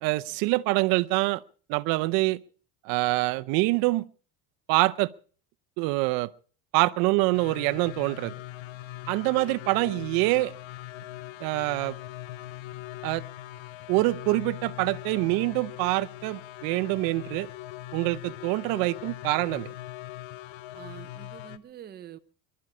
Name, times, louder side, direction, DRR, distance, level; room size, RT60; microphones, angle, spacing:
voice 1, 0.0-1.4 1.7-2.4 2.8-4.1 4.7-5.1 5.8-6.3 6.7-8.3 9.1-10.5 11.4-11.9 13.0-13.2 13.9-17.5 17.9-19.7, right 21 dB, 60° right, 0.8 m, -25 dB
sound 1, 7.3-21.6, left 15 dB, 80° left, 1.1 m, -41 dB
voice 2, 20.7-22.2, right 10 dB, 25° right, 0.8 m, -45 dB
22.5 x 12.5 x 4.9 m
cardioid pair, 170°, 39 cm